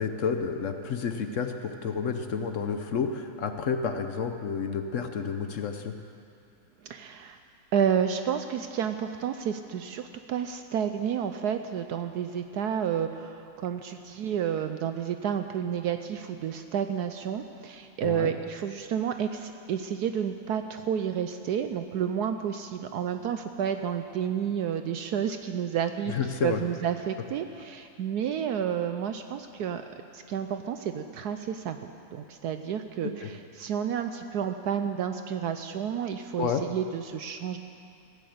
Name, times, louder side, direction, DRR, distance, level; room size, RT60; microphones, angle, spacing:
voice 1, 0.0-6.0 18.0-18.3 26.1-26.6 33.0-33.3 36.4-36.6, left 6 dB, 60° left, 6 dB, 0.8 m, -30 dB
voice 2, 6.8-7.4 7.7-26.1 26.4-29.8 30.1-31.8 32.1-37.6, right 8 dB, 70° right, 8 dB, 1.0 m, -30 dB
16.0 x 10.5 x 7.8 m, 2.5 s
omnidirectional pair, 2.1 m